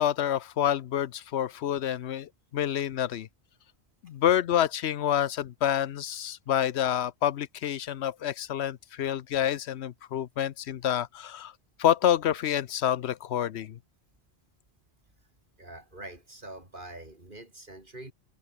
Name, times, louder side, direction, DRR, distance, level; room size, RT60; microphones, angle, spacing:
voice 1, 0.0-3.3 4.0-11.5 11.8-13.8, left 10 dB, 80° left, 1.0 m, -28 dB
voice 2, 15.6-18.1, right 1 dB, 50° right, 5.0 m, -44 dB
omnidirectional pair, 1.1 m